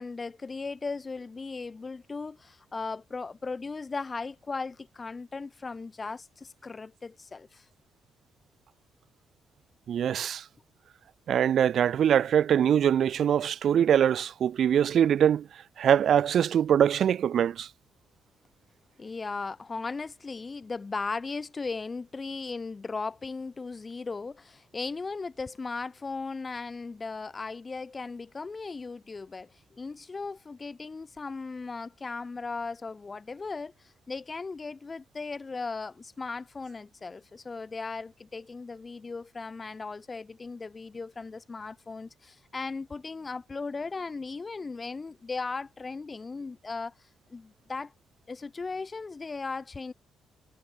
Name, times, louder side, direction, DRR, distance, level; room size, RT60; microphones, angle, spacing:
voice 1, 0.0-7.7 19.0-47.9 48.3-49.9, left 4 dB, 30° left, 6.7 m, -37 dB
voice 2, 9.9-10.4 11.3-15.5 15.8-17.7, right 9 dB, 65° right, 1.1 m, -23 dB
cardioid pair, 90°, 0 cm